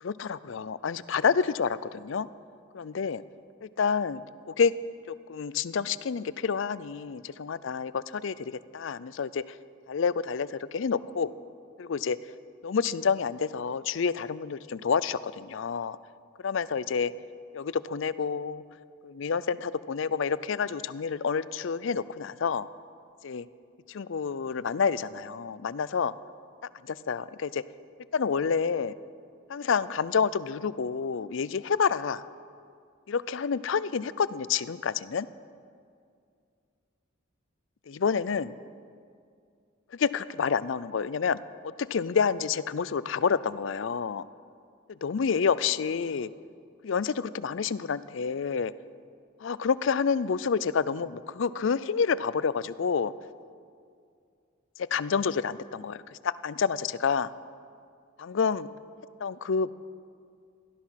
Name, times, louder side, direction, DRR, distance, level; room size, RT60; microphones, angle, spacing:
voice 1, 0.0-2.3 2.7-3.2 3.6-4.2 4.5-4.7 5.1-9.4 9.9-11.3 11.8-12.2 12.6-16.0 16.4-17.1 17.5-18.6 19.0-22.7 23.2-23.5 23.9-26.1 26.9-27.6 28.1-28.9 29.5-32.2 33.1-35.3 37.9-38.5 40.0-41.4 41.8-44.2 45.0-46.3 46.8-48.7 49.4-53.1 54.9-57.3 58.2-58.7 59.2-59.7, left 6 dB, 65° left, 17 dB, 0.4 m, -28 dB
17.5 x 12.5 x 5.8 m, 2.3 s
head